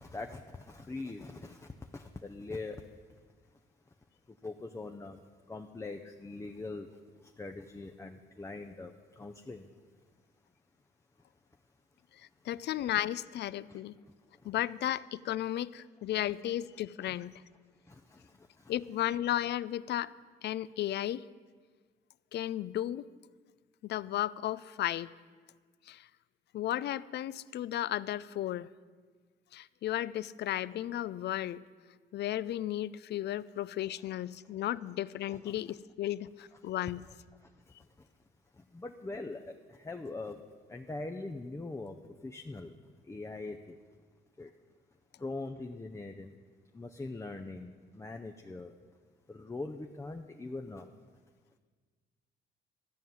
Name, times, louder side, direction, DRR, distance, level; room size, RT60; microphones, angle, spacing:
voice 1, 0.0-2.8 4.4-5.2 5.5-6.9 7.4-9.7 13.7-13.8 17.0-17.2 17.9-18.7 35.3-35.6 38.7-40.4 40.7-41.9 42.2-42.7 43.1-43.7 44.4-44.5 45.2-46.3 46.7-48.7 49.3-50.9, left 3 dB, 15° left, 5 dB, 0.6 m, -42 dB
voice 2, 12.5-14.0 14.4-17.4 18.7-20.1 20.4-21.2 22.3-23.0 23.8-25.1 25.9-26.1 26.5-28.7 29.5-31.6 32.1-37.0, left 12 dB, 60° left, 19 dB, 0.4 m, -34 dB
13.5 x 5.5 x 9.2 m, 1.5 s
cardioid pair, 90°, 20 cm